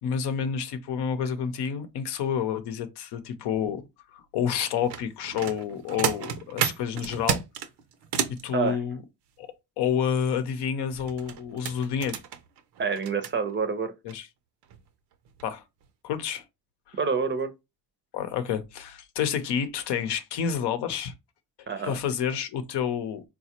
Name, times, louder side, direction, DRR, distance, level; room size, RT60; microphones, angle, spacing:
voice 1, 0.0-3.8 4.1-7.4 8.3-9.0 9.4-9.5 9.8-12.2 14.0-14.3 15.4-15.6 16.0-16.4 16.9-17.0 18.1-21.1 21.8-23.2, left 7 dB, 80° left, 0.7 m, -29 dB
sound 1, 4.6-8.4 10.9-13.3 14.1-14.2 14.6-14.8 15.3-15.5 15.8-15.9, right 8 dB, 75° right, 0.6 m, -31 dB
voice 2, 12.8-13.9 17.0-17.5 21.7-22.0, right 5 dB, 30° right, 0.5 m, -27 dB
4.1 x 2.2 x 2.8 m
cardioid pair, 95°, 40 cm